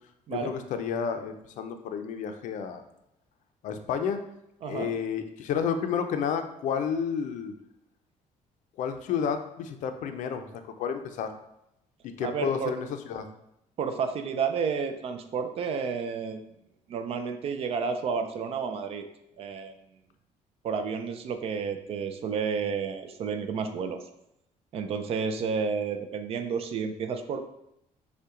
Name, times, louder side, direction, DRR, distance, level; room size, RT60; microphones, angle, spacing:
voice 1, 0.3-2.8 3.6-4.2 4.6-7.5 8.8-10.5 10.8-11.3 12.0-13.3, left 7 dB, 65° left, 7 dB, 0.5 m, -31 dB
voice 2, 12.2-12.8 13.8-16.4 16.9-19.1 19.4-19.7 20.6-24.0 24.7-27.4, right 5 dB, 45° right, 7 dB, 0.4 m, -31 dB
5.5 x 2.2 x 3.7 m, 0.81 s
cardioid pair, 170°, 14 cm